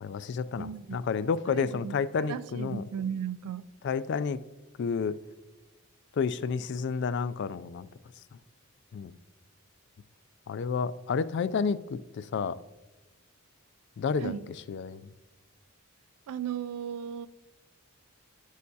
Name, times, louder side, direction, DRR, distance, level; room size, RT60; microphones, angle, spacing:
voice 1, 0.0-2.8 3.8-4.4 4.8-5.2 6.2-7.9 8.9-9.1 10.5-12.6 14.0-14.3 14.7-15.1, left 5 dB, 50° left, 0.3 m, -30 dB
voice 2, 0.6-1.0 1.5-1.9 2.2-3.6 14.2-14.4 16.3-17.3, right 8 dB, 85° right, 0.3 m, -35 dB
12.5 x 6.5 x 2.7 m
head